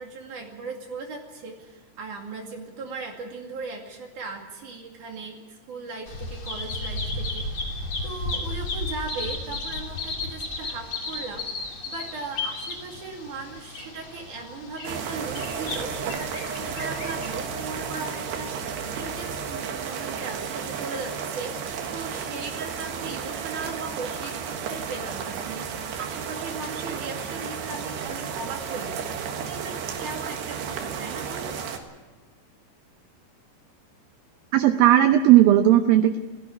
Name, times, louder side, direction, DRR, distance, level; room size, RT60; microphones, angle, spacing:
voice 1, 0.0-31.6, right 4 dB, 50° right, 1 dB, 3.4 m, -38 dB
Bird vocalization bird call bird song, 6.1-17.5, left 2 dB, 35° left, 2.9 m, -34 dB
sound 1, 14.8-31.8, right 6 dB, 70° right, 3.6 m, -33 dB
voice 2, 34.5-36.2, right 12 dB, 90° right, 8 dB, 2.0 m, -16 dB
17.5 x 16.0 x 9.7 m, 1.3 s
omnidirectional pair, 5.2 m